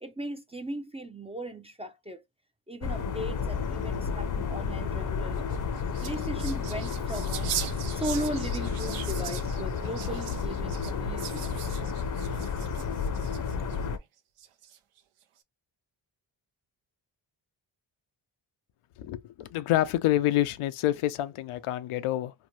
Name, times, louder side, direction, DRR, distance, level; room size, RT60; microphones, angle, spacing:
voice 1, 0.0-2.2 2.7-5.5 6.0-11.5, right 1 dB, 15° right, 0.4 m, -37 dB
sound 1, 2.8-14.0, left 5 dB, 40° left, 0.6 m, -31 dB
sound 2, 5.4-13.8 14.4-15.0, right 10 dB, 90° right, 0.7 m, -40 dB
voice 2, 19.0-22.3, left 14 dB, 85° left, 0.5 m, -27 dB
2.8 x 2.1 x 3.0 m
cardioid pair, 80°, 49 cm